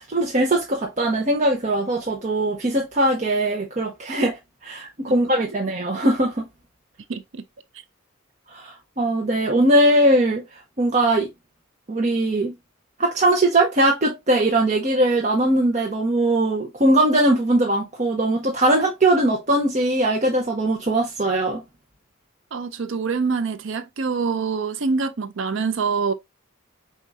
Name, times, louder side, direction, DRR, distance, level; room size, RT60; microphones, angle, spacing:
voice 1, 0.0-6.5 8.5-10.4 10.8-11.3 11.9-12.5 13.0-21.6, right 1 dB, 35° right, 0.8 m, -20 dB
voice 2, 7.1-7.4 22.5-26.1, right 5 dB, 60° right, 0.5 m, -25 dB
4.7 x 4.3 x 2.6 m
head